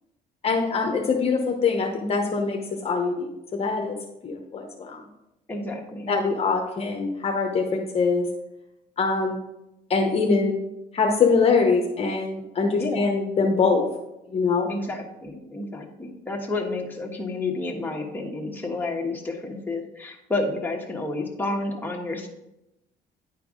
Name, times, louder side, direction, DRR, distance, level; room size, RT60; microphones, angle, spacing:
voice 1, 0.4-4.0 4.2-5.0 6.1-8.2 9.0-9.4 9.9-10.6 10.9-13.8 14.3-14.7, left 4 dB, 35° left, 2 dB, 1.0 m, -23 dB
voice 2, 5.5-6.2 12.8-13.2 14.7-22.3, left 2 dB, 10° left, -1 dB, 1.3 m, -30 dB
9.8 x 4.6 x 3.8 m, 0.90 s
cardioid pair, 110°, 17 cm